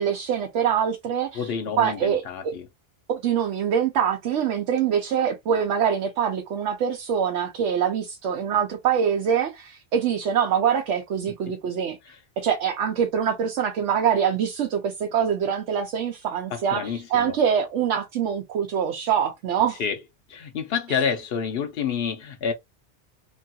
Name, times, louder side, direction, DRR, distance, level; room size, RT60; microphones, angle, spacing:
voice 1, 0.0-1.5 1.8-2.5 3.1-12.0 12.4-19.8 20.9-21.0, right 8 dB, 85° right, 0.9 m, -24 dB
voice 2, 1.3-2.7 12.1-12.2 16.5-17.4 19.8-20.0 20.3-22.5, left 6 dB, 65° left, 0.9 m, -28 dB
3.0 x 2.3 x 2.6 m
omnidirectional pair, 1.2 m